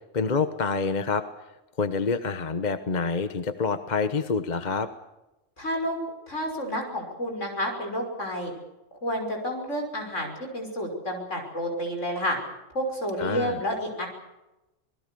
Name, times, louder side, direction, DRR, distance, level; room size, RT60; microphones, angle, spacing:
voice 1, 0.1-1.2 1.8-4.9 13.2-13.6, left 4 dB, 40° left, 10 dB, 1.2 m, -27 dB
voice 2, 5.6-6.0 6.3-8.5 9.0-12.4 12.7-14.1, equal, 75° left, 3 dB, 6.4 m, -30 dB
27.0 x 20.0 x 6.9 m, 0.98 s
omnidirectional pair, 1.3 m